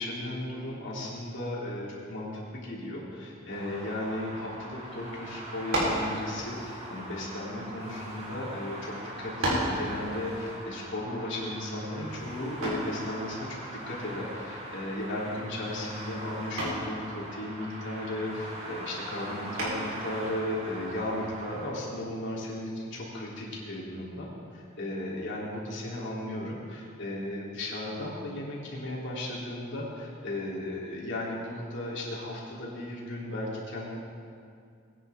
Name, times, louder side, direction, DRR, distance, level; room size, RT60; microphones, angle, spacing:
voice 1, 0.0-24.3 24.5-33.9, left 1 dB, 60° left, -5 dB, 3.1 m, -35 dB
sound 1, 3.5-21.7, right 1 dB, 30° right, 2.0 m, -41 dB
sound 2, 5.7-6.1 7.0-8.2 8.9-9.0 9.4-9.8 12.6-13.0 14.9-15.2 15.6-16.0 16.6-16.9 19.6-20.0, right 1 dB, 75° right, 3.7 m, -30 dB
20.5 x 9.9 x 3.5 m, 2.3 s
head